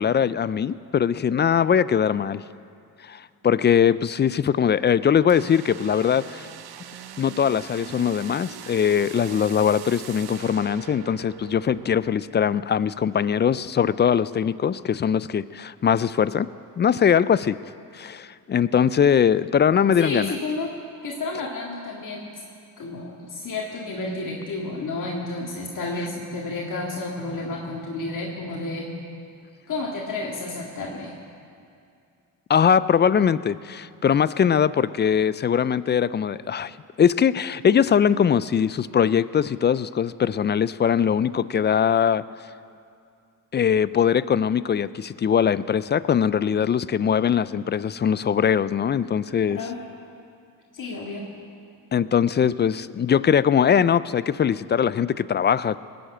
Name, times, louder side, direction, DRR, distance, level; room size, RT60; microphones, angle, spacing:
voice 1, 0.0-2.4 3.1-6.5 7.2-16.5 16.8-17.6 17.9-20.4 32.5-36.7 37.0-42.2 43.5-49.6 51.9-55.8, left 8 dB, 30° left, 17 dB, 0.4 m, -21 dB
sound 1, 5.3-12.2, right 9 dB, 75° right, 0.9 m, -41 dB
voice 2, 20.0-20.7 21.0-22.3 22.8-28.9 29.7-31.1 49.5-49.8 50.7-51.2, left 3 dB, 55° left, -2 dB, 2.0 m, -31 dB
19.5 x 7.9 x 8.8 m, 2.4 s
cardioid pair, 85°, 38 cm